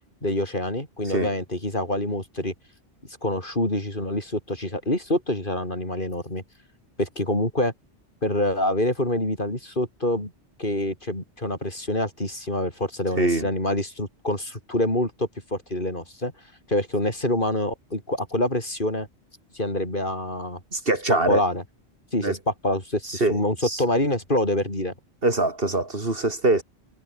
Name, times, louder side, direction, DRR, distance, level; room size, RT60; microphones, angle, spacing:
voice 1, 0.2-2.5 3.2-6.4 7.0-7.7 8.2-10.3 10.6-16.3 16.7-19.1 19.5-20.6 21.3-21.6 22.1-24.9, left 1 dB, 50° left, 6.8 m, -26 dB
voice 2, 13.2-13.5 20.7-21.4 22.2-22.4 23.0-23.8 25.2-26.6, right 2 dB, 55° right, 3.4 m, -23 dB
omnidirectional pair, 1.1 m